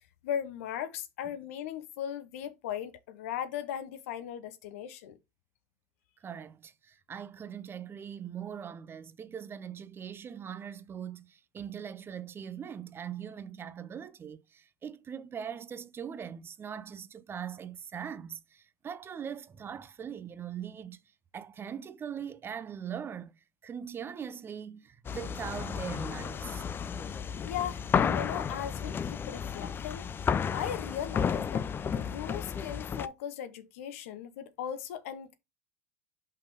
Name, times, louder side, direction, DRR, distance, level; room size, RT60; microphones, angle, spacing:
voice 1, 0.2-5.2 27.4-30.1 30.5-31.7 31.9-35.3, left 9 dB, 80° left, 0.9 m, -38 dB
voice 2, 6.2-21.0 21.3-26.6, right 8 dB, 30° right, 0.6 m, -41 dB
sound 1, 25.1-33.1, left 7 dB, 30° left, 0.5 m, -32 dB
5.6 x 3.5 x 5.3 m
hypercardioid pair, 90°, 8 cm